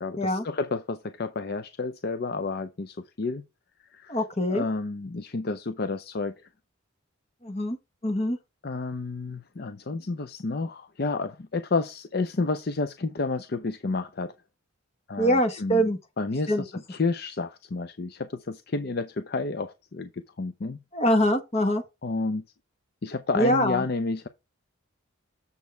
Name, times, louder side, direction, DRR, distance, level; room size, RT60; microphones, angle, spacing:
voice 1, 0.0-3.4 3.9-4.2 4.5-6.5 8.6-14.3 15.1-15.9 16.2-20.8 22.0-22.4 23.0-24.3, left 3 dB, 45° left, 0.5 m, -30 dB
voice 2, 4.1-4.6 7.4-7.8 8.0-8.4 15.2-16.0 16.5-16.6 20.9-21.8 23.3-23.8, equal, 30° left, 1.2 m, -24 dB
7.2 x 6.3 x 3.3 m
head